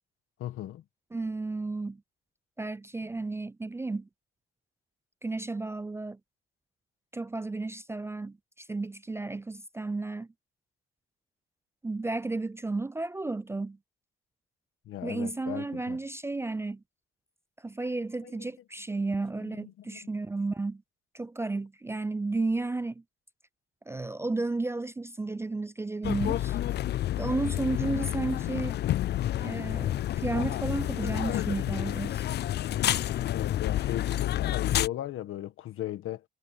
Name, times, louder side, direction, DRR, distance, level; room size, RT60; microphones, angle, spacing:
voice 1, 0.4-0.8 14.8-16.0 18.2-18.5 19.4-20.0 33.2-36.2, left 13 dB, 80° left, 1.7 m, -37 dB
voice 2, 1.1-2.0 2.6-4.1 5.2-6.2 7.1-10.3 11.8-13.8 15.0-16.8 17.6-20.8 21.1-22.9 23.9-26.6 27.2-28.8 29.4-32.2, right 3 dB, 10° right, 0.3 m, -33 dB
sound 1, 26.0-34.9, left 13 dB, 55° left, 0.4 m, -29 dB
cardioid pair, 110°, 21 cm